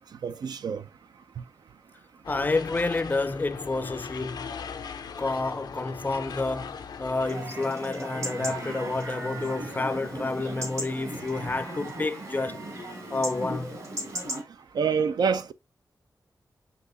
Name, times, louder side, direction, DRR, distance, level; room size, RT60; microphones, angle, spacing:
voice 1, 0.2-0.8 14.7-15.5, right 6 dB, 80° right, 0.4 m, -26 dB
sound 1, 2.2-7.3, left 6 dB, 85° left, 0.5 m, -39 dB
voice 2, 2.3-4.6 5.2-12.6 13.1-13.8, left 3 dB, 25° left, 0.4 m, -29 dB
Chatter / Livestock farm animals working animals / Chirp tweet, 7.2-14.4, right 1 dB, 60° right, 2.9 m, -36 dB
5.9 x 2.9 x 2.7 m
wide cardioid pair, 95°, 7 cm